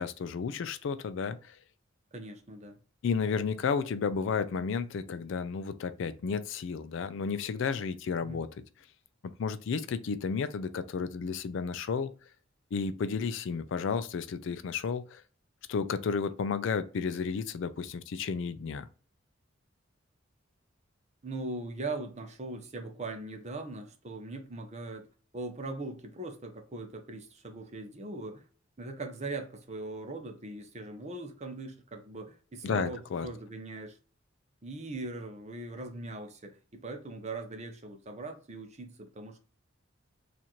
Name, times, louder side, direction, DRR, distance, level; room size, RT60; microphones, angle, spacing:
voice 1, 0.0-1.6 3.0-8.6 9.2-12.1 12.7-15.2 15.7-18.9 32.6-33.3, left 5 dB, 65° left, 0.3 m, -32 dB
voice 2, 2.1-2.8 8.2-8.4 21.2-25.1 25.3-28.4 28.8-34.0 34.6-39.4, right 2 dB, 35° right, 0.7 m, -40 dB
4.1 x 2.5 x 2.9 m
head